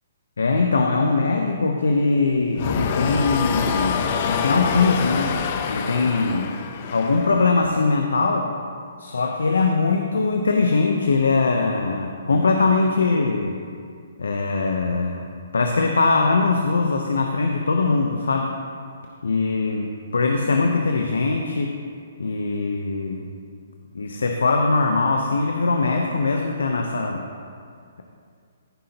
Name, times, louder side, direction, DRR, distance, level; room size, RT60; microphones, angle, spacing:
voice 1, 0.4-4.0 4.2-5.3 5.7-6.5 6.9-8.5 9.0-13.6 14.2-15.3 15.5-18.5 19.2-21.8 22.2-23.3 23.9-27.2, left 3 dB, 90° left, 3 dB, 0.7 m, -21 dB
sound 1, 2.5-7.7, left 6 dB, 45° left, 0.6 m, -26 dB
15.5 x 5.7 x 2.9 m, 2.2 s
hypercardioid pair, 150°, 0 cm